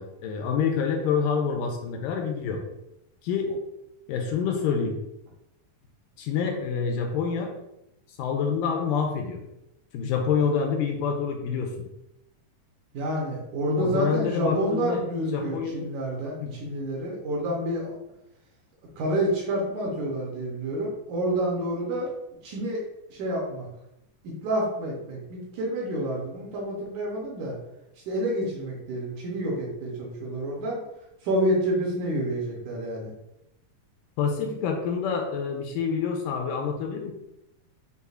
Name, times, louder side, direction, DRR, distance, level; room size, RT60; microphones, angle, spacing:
voice 1, 0.0-2.6 3.2-3.5 4.1-5.0 6.2-7.5 8.2-9.4 9.9-11.7 13.8-15.0 15.3-15.7 16.4-16.5 34.2-37.1, left 6 dB, 80° left, 3 dB, 2.1 m, -27 dB
voice 2, 12.9-17.9 19.0-22.1 22.4-22.8 23.1-23.7 24.2-27.6 28.1-30.8 31.2-33.1, right 1 dB, 70° right, -3 dB, 2.1 m, -28 dB
6.7 x 2.3 x 2.4 m, 0.87 s
omnidirectional pair, 3.9 m